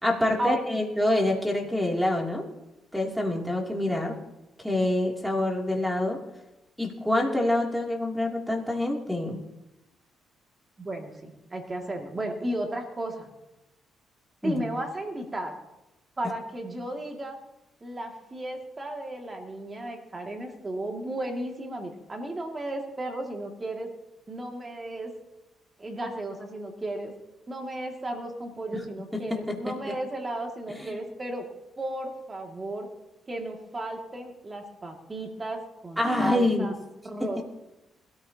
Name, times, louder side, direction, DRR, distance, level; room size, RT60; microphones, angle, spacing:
voice 1, 0.0-2.5 2.9-4.2 4.6-6.2 6.8-9.4 14.4-14.6 28.7-28.8 29.1-30.0 30.8-31.0 36.0-36.7 37.2-37.4, left 1 dB, ahead, 0 dB, 2.9 m, -26 dB
voice 2, 10.8-13.3 14.4-15.5 16.2-17.4 17.8-23.9 24.3-25.1 25.8-27.1 27.5-31.5 31.8-32.9 33.3-36.7 37.0-37.4, right 1 dB, 25° right, 2 dB, 2.3 m, -34 dB
21.0 x 13.5 x 2.9 m, 0.96 s
cardioid pair, 90°, 0 cm